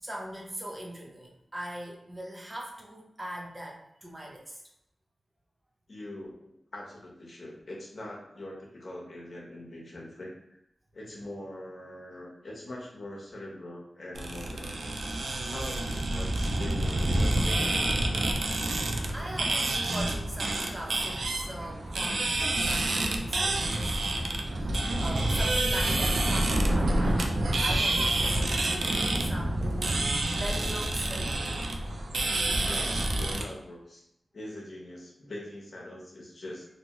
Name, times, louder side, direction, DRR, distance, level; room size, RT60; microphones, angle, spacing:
voice 1, 0.0-4.6 19.1-27.3 27.6-31.3, right 1 dB, 30° right, -2 dB, 0.7 m, -40 dB
voice 2, 5.9-10.6 10.9-14.8 15.5-17.8 32.6-34.1 34.3-36.7, left 1 dB, 65° left, -3 dB, 0.8 m, -42 dB
sound 1, 14.1-33.4, right 1 dB, 75° right, 0.3 m, -28 dB
2.7 x 2.2 x 2.9 m, 0.80 s
cardioid pair, 60°, 0 cm